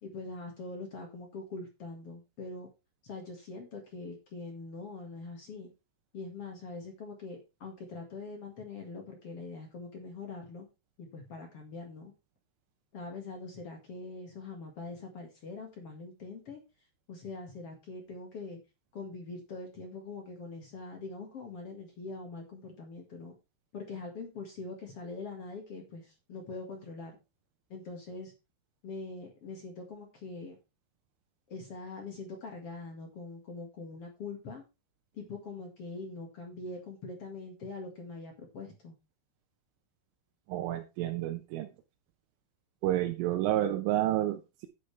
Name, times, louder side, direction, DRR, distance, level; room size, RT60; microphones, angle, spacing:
voice 1, 0.0-2.7 3.0-5.7 6.1-10.7 11.0-12.1 12.9-16.6 17.1-18.6 18.9-23.3 23.7-27.2 27.7-28.3 28.8-30.5 31.5-34.6 35.1-38.9, left 3 dB, 60° left, 1.5 m, -43 dB
voice 2, 40.5-41.7 42.8-44.7, right 13 dB, 80° right, 3.4 m, -30 dB
10.0 x 9.7 x 3.3 m
omnidirectional pair, 5.7 m